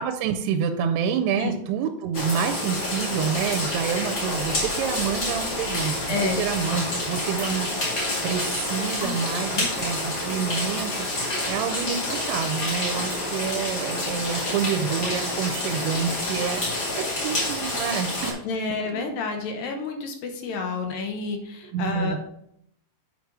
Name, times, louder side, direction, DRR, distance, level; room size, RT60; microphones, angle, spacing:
voice 1, 0.0-5.9 6.4-18.4 18.9-19.1 21.6-22.2, right 7 dB, 85° right, 5 dB, 2.6 m, -28 dB
sound 1, 2.1-18.3, left 1 dB, 35° left, 2.0 m, -28 dB
voice 2, 6.1-6.5 8.9-9.2 9.5-9.7 18.4-22.2, left 4 dB, 70° left, 4 dB, 2.3 m, -29 dB
7.9 x 5.0 x 4.7 m, 0.73 s
omnidirectional pair, 4.8 m